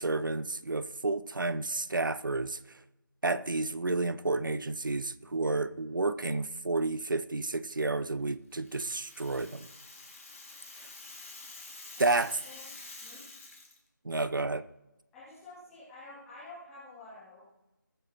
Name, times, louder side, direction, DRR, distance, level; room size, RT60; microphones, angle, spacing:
voice 1, 0.0-2.6 3.2-9.7 12.0-12.3 14.0-14.6, right 3 dB, 75° right, 14 dB, 0.7 m, -31 dB
Rattle (instrument), 8.5-13.8, left 3 dB, 40° left, 2.2 m, -48 dB
voice 2, 12.0-12.6 13.0-13.2 15.1-17.4, left 2 dB, ahead, -12 dB, 0.5 m, -49 dB
21.5 x 7.9 x 3.0 m, 0.98 s
figure-of-eight pair, 170°, 11 cm